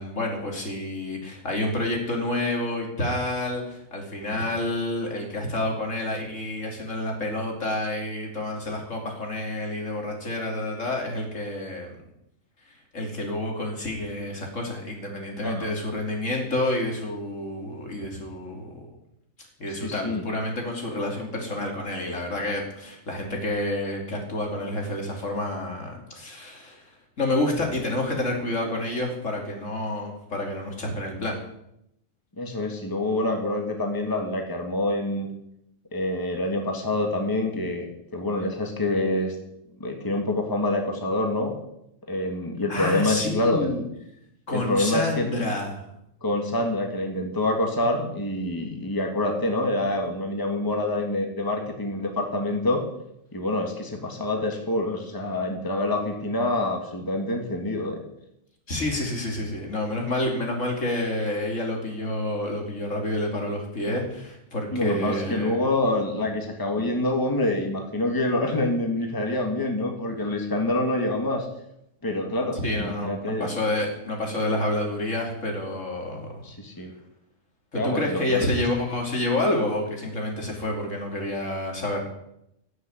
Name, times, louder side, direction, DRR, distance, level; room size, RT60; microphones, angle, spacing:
voice 1, 0.0-12.0 12.6-18.9 19.6-26.9 27.2-31.4 42.7-43.8 44.5-45.8 58.7-65.6 72.6-76.4 77.7-82.0, left 1 dB, 65° left, 1 dB, 3.3 m, -29 dB
voice 2, 19.7-20.2 32.4-35.3 35.9-37.9 38.1-39.4 39.8-41.6 42.1-43.8 44.5-45.3 46.2-52.8 53.3-58.0 64.7-71.5 72.0-73.5 76.4-76.9 77.7-78.5, left 1 dB, 15° left, 2 dB, 1.8 m, -26 dB
16.5 x 6.6 x 8.0 m, 0.80 s
omnidirectional pair, 1.4 m